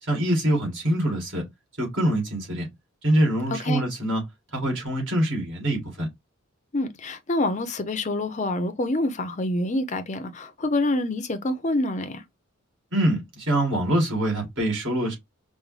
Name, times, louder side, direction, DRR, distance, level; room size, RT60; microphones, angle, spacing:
voice 1, 0.1-1.4 1.8-2.7 3.0-4.2 4.5-6.1 12.9-15.2, right 1 dB, 55° right, 2.1 m, -24 dB
voice 2, 3.5-3.9 6.7-12.2, left 2 dB, 35° left, 0.6 m, -26 dB
5.1 x 2.1 x 3.1 m
head